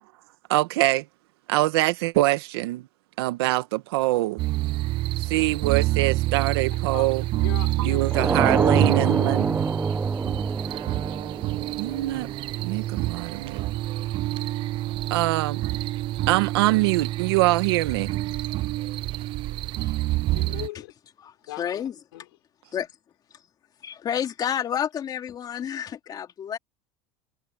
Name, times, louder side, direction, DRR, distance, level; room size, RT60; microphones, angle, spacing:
voice 1, 0.5-1.0 1.5-2.9 3.2-4.4 5.2-7.2 7.8-9.6 11.8-12.3 12.6-13.7 15.1-15.6 16.3-18.1, right 18 dB, 85° right, 1.6 m, -24 dB
sound 1, 4.4-20.7, right 17 dB, 40° right, 0.4 m, -28 dB
voice 2, 6.5-8.5 20.3-20.9 21.4-22.3 22.6-22.7, left 19 dB, 90° left, 5.5 m, -39 dB
sound 2, 8.1-12.8, right 5 dB, 15° right, 0.7 m, -26 dB
voice 3, 21.2-21.9 22.7-22.9 23.8-26.6, left 9 dB, 30° left, 2.9 m, -30 dB
supercardioid pair, 135°, 13 cm